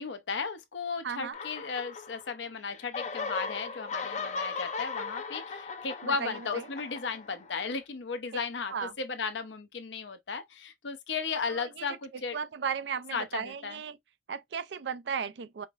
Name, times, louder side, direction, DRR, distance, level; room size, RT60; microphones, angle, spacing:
voice 1, 0.0-12.4 13.1-13.8, left 5 dB, 80° left, 0.7 m, -35 dB
voice 2, 1.0-1.4 6.0-6.6 8.3-8.4 8.7-8.9 11.5-11.9 12.3-14.0 14.3-15.7, right 6 dB, 70° right, 0.4 m, -35 dB
sound 1, 1.3-2.5 2.7-7.7, left 4 dB, 40° left, 0.5 m, -38 dB
5.0 x 2.0 x 2.4 m
head